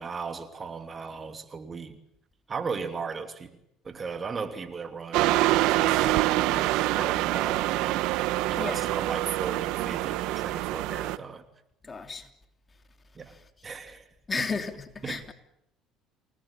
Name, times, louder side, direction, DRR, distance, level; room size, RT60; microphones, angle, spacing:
voice 1, 0.0-2.0 2.5-3.5 3.8-8.0 8.5-11.4 13.1-13.4 13.6-14.1 14.4-14.5 15.0-15.3, right 5 dB, 30° right, 3.1 m, -37 dB
sound 1, 5.1-11.2, right 16 dB, 75° right, 1.1 m, -25 dB
voice 2, 8.5-8.8 11.8-12.3 13.2-13.7 14.3-15.3, left 4 dB, 30° left, 3.1 m, -34 dB
28.5 x 19.5 x 8.8 m
supercardioid pair, 80°, 0 cm